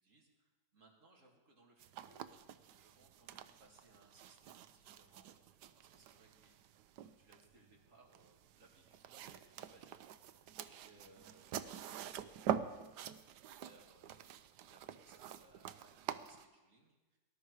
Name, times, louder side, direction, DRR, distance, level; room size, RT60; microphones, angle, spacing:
voice 1, 0.0-2.3 2.7-6.6 7.0-17.2, right 2 dB, 50° right, -1 dB, 2.8 m, -67 dB
sound 1, 1.8-16.4, right 10 dB, 85° right, 1.2 m, -46 dB
18.0 x 12.0 x 4.8 m, 1.2 s
omnidirectional pair, 1.8 m